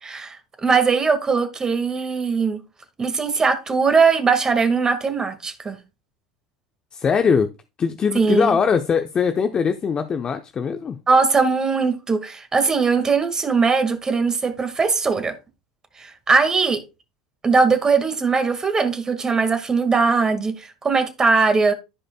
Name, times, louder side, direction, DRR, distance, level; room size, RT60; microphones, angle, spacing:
voice 1, 0.0-2.6 3.0-5.8 8.1-8.6 11.1-15.3 16.0-16.8 17.4-21.7, right 4 dB, 25° right, 1.9 m, -20 dB
voice 2, 6.9-7.5 7.8-11.0, left 6 dB, 30° left, 0.8 m, -21 dB
15.0 x 5.0 x 2.3 m
hypercardioid pair, 75°, 3 cm